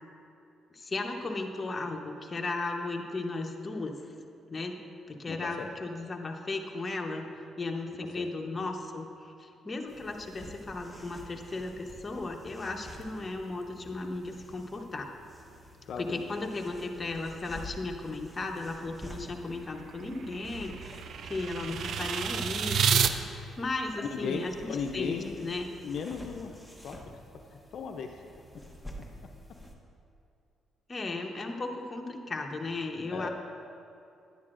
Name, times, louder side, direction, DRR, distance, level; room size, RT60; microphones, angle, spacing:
voice 1, 0.7-4.1 4.5-7.3 7.6-9.1 9.4-15.1 16.0-24.5 24.9-25.7 30.9-33.3, left 2 dB, 30° left, 2 dB, 0.8 m, -36 dB
voice 2, 5.3-5.7 8.2-8.3 8.5-8.7 15.8-16.2 24.0-25.5 25.8-26.6 26.8-27.0 27.5-28.2 33.1-33.3, left 5 dB, 65° left, 4 dB, 0.5 m, -36 dB
sound 1, 9.9-29.7, equal, 5° right, 1.0 m, -49 dB
sound 2, 19.5-23.1, right 7 dB, 65° right, 0.4 m, -30 dB
10.5 x 9.5 x 2.5 m, 2.6 s
cardioid pair, 90°, 0 cm